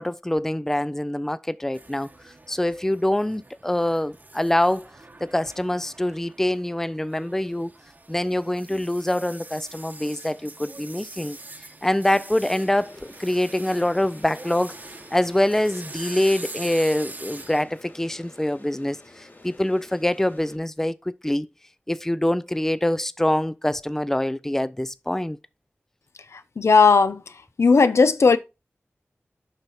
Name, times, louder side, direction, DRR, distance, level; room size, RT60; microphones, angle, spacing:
voice 1, 0.0-4.9 5.2-7.7 8.1-11.4 11.8-14.7 15.1-21.5 21.9-25.4, left 1 dB, 10° left, 0.4 m, -25 dB
sound 1, 1.7-17.6, right 2 dB, 40° right, 1.0 m, -43 dB
sound 2, 12.4-20.6, left 2 dB, 50° left, 3.2 m, -49 dB
voice 2, 26.3-27.2 27.6-28.4, left 4 dB, 80° left, 0.6 m, -16 dB
8.0 x 5.6 x 4.2 m
wide cardioid pair, 80°, 5 cm